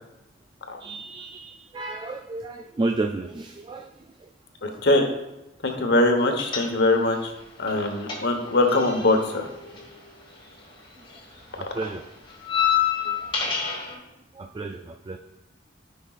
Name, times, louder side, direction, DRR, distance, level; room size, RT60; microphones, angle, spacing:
voice 1, 0.8-3.9 4.2-4.3 11.5-12.1 13.0-13.3 14.3-15.2, right 3 dB, 25° right, 5 dB, 0.3 m, -32 dB
voice 2, 4.6-5.1 5.6-7.3 7.6-9.5, left 2 dB, 60° left, 4 dB, 1.1 m, -22 dB
sound 1, 6.4-7.1 7.4-10.8 11.0-13.9, left 8 dB, 25° left, 1.7 m, -28 dB
14.0 x 5.4 x 2.4 m, 0.93 s
head